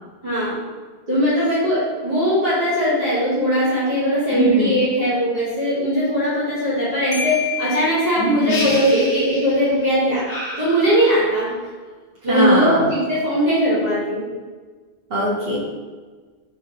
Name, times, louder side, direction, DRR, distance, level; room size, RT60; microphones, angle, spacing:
voice 1, 0.2-0.5 1.1-10.2 10.6-11.5 12.2-14.2, equal, 35° right, -13 dB, 1.6 m, -19 dB
voice 2, 4.3-4.7 8.2-8.6 12.3-12.8 15.1-15.6, right 1 dB, 60° right, -8 dB, 1.3 m, -21 dB
Marimba xylophone, 7.1-8.9, left 7 dB, 30° left, 0.6 m, -29 dB
sound 1, 8.5-9.8 10.3-11.5, left 1 dB, 45° left, 1.0 m, -31 dB
4.9 x 3.2 x 2.8 m, 1.4 s
omnidirectional pair, 1.1 m